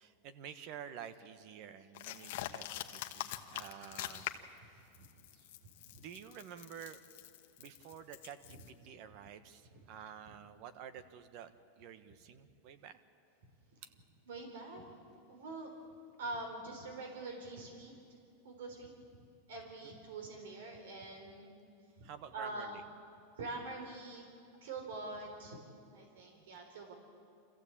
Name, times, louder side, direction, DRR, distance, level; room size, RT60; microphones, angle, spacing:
voice 1, 0.0-4.3 4.6-4.9 5.3-5.5 5.9-7.0 7.6-13.0 13.8-13.9 19.8-20.0 22.0-22.8 26.3-26.7, right 8 dB, 45° right, 12 dB, 1.2 m, -50 dB
sound 1, 1.9-4.6 4.9-8.7, left 14 dB, 60° left, 1.2 m, -44 dB
voice 2, 14.3-14.8 15.3-15.7 16.2-17.9 18.4-18.9 19.2-21.5 22.0-22.8 23.4-24.2 24.6-25.6 25.9-26.9, right 2 dB, 85° right, 3 dB, 3.9 m, -45 dB
26.0 x 15.0 x 8.6 m, 2.5 s
supercardioid pair, 155°, 0 cm